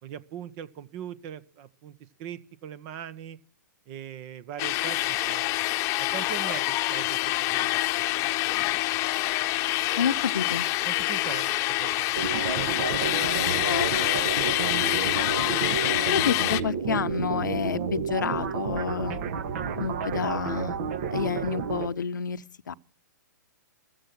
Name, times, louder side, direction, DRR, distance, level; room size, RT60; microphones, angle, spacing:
voice 1, 0.0-3.4 3.9-5.5 6.0-8.3 10.8-12.6 13.0-14.7 19.5-19.7, right 9 dB, 35° right, 1.2 m, -41 dB
sound 1, 4.6-16.6, left 17 dB, 30° left, 1.0 m, -26 dB
voice 2, 10.0-10.7 13.6-13.9 16.1-19.2 19.8-20.8 21.1-22.7, left 6 dB, 80° left, 0.9 m, -29 dB
sound 2, 12.2-21.9, right 6 dB, 55° right, 1.7 m, -31 dB
15.0 x 14.5 x 6.2 m
hypercardioid pair, 125°, 10 cm